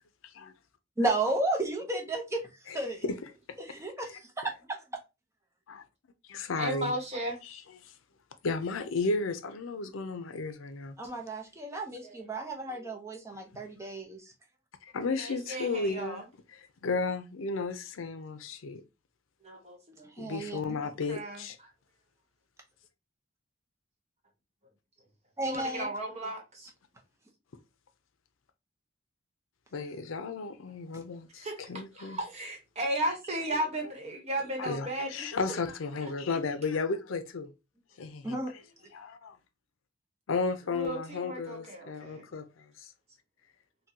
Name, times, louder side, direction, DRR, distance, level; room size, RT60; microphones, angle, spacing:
voice 1, 1.0-2.4 2.7-3.0 3.6-5.0 11.0-14.3 20.2-20.8 25.4-25.9 38.2-38.5, right 2 dB, 15° right, 0.7 m, -33 dB
voice 2, 2.7-3.2 5.7-5.8 6.3-6.9 7.4-7.9 8.4-11.0 13.5-13.6 14.9-16.2 16.5-18.8 20.2-21.6 29.7-32.2 34.6-37.5 38.0-38.4 38.9-39.4 40.3-42.9, left 3 dB, 80° left, 0.5 m, -34 dB
voice 3, 6.5-7.4 12.0-12.2 12.7-12.9 15.2-16.3 19.4-20.1 20.8-21.4 25.4-26.7 31.4-31.6 31.9-35.6 40.7-42.3, right 1 dB, 35° right, 1.1 m, -35 dB
3.9 x 2.2 x 2.8 m
head